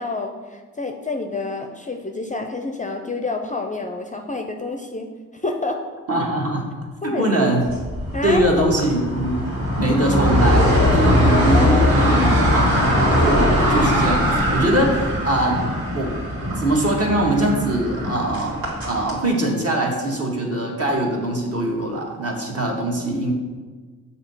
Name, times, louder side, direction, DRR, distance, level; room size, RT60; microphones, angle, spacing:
voice 1, 0.0-5.8 7.0-7.4 8.1-8.7 11.0-12.3, left 3 dB, 20° left, 4 dB, 0.5 m, -28 dB
voice 2, 6.1-6.7 7.0-7.6 8.2-9.4 9.8-15.6 15.9-16.2 16.6-23.3, right 1 dB, 45° right, -1 dB, 1.5 m, -22 dB
sound 1, 7.7-19.2, equal, 85° right, 1.9 m, -20 dB
6.5 x 2.8 x 5.5 m, 1.4 s
cardioid pair, 55°, 34 cm